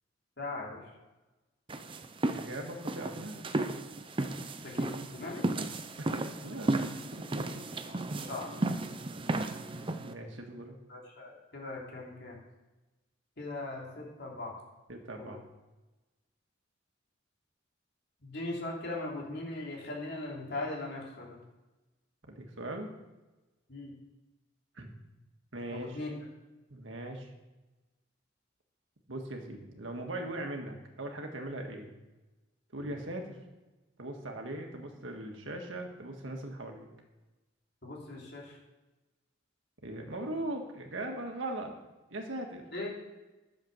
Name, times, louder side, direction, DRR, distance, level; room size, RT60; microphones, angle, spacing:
voice 1, 0.4-0.8 4.6-5.4 8.3-8.5 10.9-12.4 13.4-14.5 15.2-15.3 18.2-21.4 23.7-23.9 25.7-26.2 32.8-32.9 37.8-38.6 42.7-42.9, left 2 dB, 60° left, -2 dB, 3.1 m, -39 dB
sound 1, 1.7-10.1, right 2 dB, 25° right, 0.6 m, -34 dB
voice 2, 2.3-3.4 6.0-7.6 10.0-10.8 14.9-15.5 22.3-22.9 24.8-24.9 25.5-26.0 26.7-27.3 29.1-31.9 32.7-33.4 34.0-36.9 39.8-41.8 42.1-42.6, right 1 dB, 90° right, 2 dB, 1.8 m, -40 dB
11.0 x 7.2 x 6.6 m, 1.1 s
head